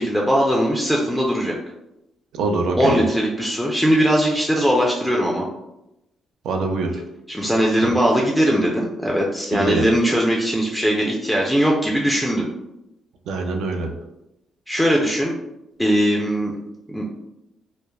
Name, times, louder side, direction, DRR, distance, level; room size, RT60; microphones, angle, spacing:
voice 1, 0.0-1.6 2.8-5.5 7.3-12.4 14.7-15.3 15.8-16.5 16.9-17.1, equal, 5° left, -2 dB, 0.4 m, -20 dB
voice 2, 2.3-3.0 6.4-7.0 7.8-7.9 9.5-9.9 13.3-13.9, right 3 dB, 80° right, 3 dB, 0.4 m, -24 dB
3.1 x 2.0 x 2.2 m, 0.89 s
cardioid pair, 90°, 0 cm